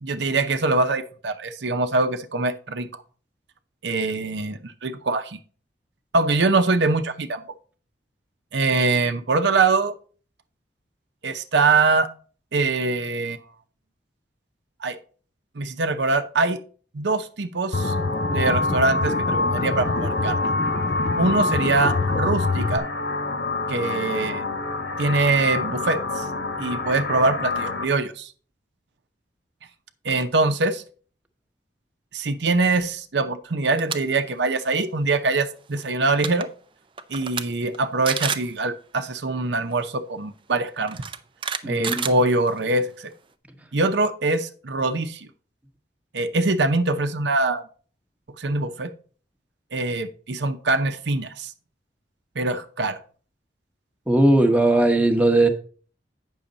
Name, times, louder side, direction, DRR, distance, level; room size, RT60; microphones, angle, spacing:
voice 1, 0.0-2.9 3.8-5.4 6.1-7.4 8.5-9.9 11.2-12.1 12.5-13.4 14.8-15.0 15.6-16.6 16.9-17.9 18.3-20.5 21.2-22.9 23.7-24.4 25.0-26.3 26.6-28.3 30.0-30.8 32.1-36.5 37.1-41.0 41.6-43.1 43.7-45.3 46.1-47.6 48.4-48.9 49.7-51.5 52.4-53.0, right 3 dB, 65° right, 0.7 m, -23 dB
sound 1, 17.7-27.8, left 2 dB, 70° left, 1.7 m, -27 dB
sound 2, 17.7-22.8, left 4 dB, 40° left, 0.4 m, -27 dB
sound 3, 33.6-34.0 34.4-34.6 35.8-35.9 36.1-36.5 37.0-37.4 37.7-37.8 38.1-38.5 39.7-39.8 40.9-42.7, right 6 dB, 25° right, 0.5 m, -29 dB
voice 2, 41.6-42.1 54.1-55.5, right 1 dB, 10° right, 1.0 m, -18 dB
8.6 x 6.4 x 3.9 m
head